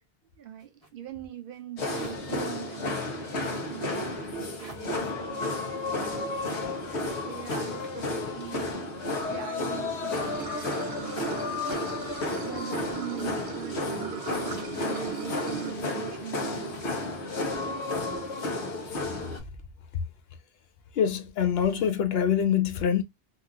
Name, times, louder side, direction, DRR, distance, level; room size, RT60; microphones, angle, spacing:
voice 1, 0.4-7.0 7.3-8.6 9.0-11.5 11.9-12.1 12.4-16.7, right 10 dB, 60° right, 0.7 m, -41 dB
sound 1, 0.6-0.9 1.5-1.6 2.0-2.6 2.8-3.0 4.6-5.1 5.9-8.8 9.6-9.7 9.9-10.5 11.6-11.9 12.4-12.5 12.8-13.4 14.0-14.1 14.5-15.6 16.3-16.9 17.6-17.7 17.9-18.3, equal, 35° left, 1.4 m, -50 dB
sound 2, 1.8-19.4, left 2 dB, 90° left, 1.2 m, -32 dB
Water / Sink (filling or washing), 10.1-15.7, right 7 dB, 80° right, 1.0 m, -40 dB
voice 2, 20.9-23.0, left 8 dB, 70° left, 0.8 m, -25 dB
2.9 x 2.6 x 2.4 m
omnidirectional pair, 1.1 m